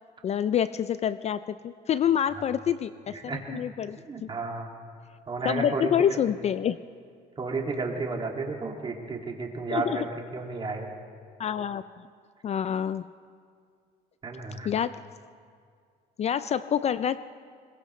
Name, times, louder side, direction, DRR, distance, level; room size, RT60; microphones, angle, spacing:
voice 1, 0.2-4.3 5.4-6.8 9.7-10.1 11.4-11.8 12.4-13.0 14.6-15.0 16.2-17.2, left 9 dB, 40° left, 14 dB, 0.4 m, -27 dB
voice 2, 3.1-3.6 4.0-4.8 5.3-6.2 7.4-10.9 14.2-14.7, right 3 dB, 30° right, 1 dB, 2.3 m, -33 dB
21.5 x 20.5 x 3.2 m, 2.2 s
cardioid pair, 110°, 17 cm